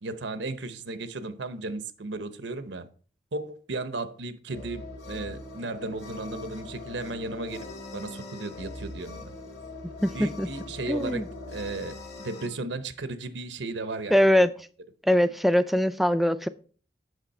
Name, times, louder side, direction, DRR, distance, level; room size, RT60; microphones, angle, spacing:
voice 1, 0.0-2.9 3.3-7.7 7.9-9.3 10.1-14.1, right 2 dB, 85° right, 0.8 m, -35 dB
sound 1, 4.5-12.5, left 2 dB, 65° left, 2.0 m, -41 dB
voice 2, 10.0-10.5 10.9-11.3 14.1-14.5 15.0-16.5, equal, ahead, 0.3 m, -22 dB
8.2 x 6.2 x 4.2 m
head